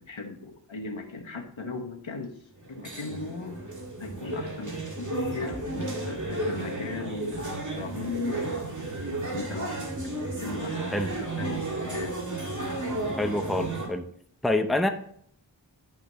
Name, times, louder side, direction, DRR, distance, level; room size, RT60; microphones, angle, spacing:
voice 1, 0.0-3.6 4.0-7.4 7.7-8.6 9.3-9.9 10.4-10.8 11.2-12.2, left 4 dB, 85° left, 1.3 m, -37 dB
sound 1, 2.6-13.9, right 2 dB, 40° right, 2.1 m, -33 dB
voice 2, 13.2-14.1 14.4-14.9, left 2 dB, ahead, 0.7 m, -26 dB
10.5 x 5.9 x 3.1 m
wide cardioid pair, 50°, 45 cm